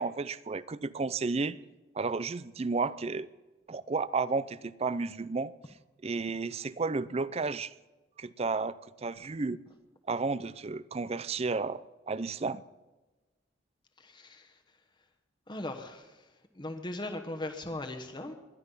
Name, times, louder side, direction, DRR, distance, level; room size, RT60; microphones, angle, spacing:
voice 1, 0.0-1.6 1.9-3.3 3.7-5.5 6.0-7.7 8.2-8.7 9.0-9.6 10.1-12.6, right 4 dB, 35° right, 18 dB, 0.5 m, -32 dB
voice 2, 14.0-14.6 15.5-16.3 16.5-18.3, left 1 dB, 25° left, 4 dB, 1.2 m, -39 dB
20.5 x 12.0 x 5.6 m, 1.2 s
head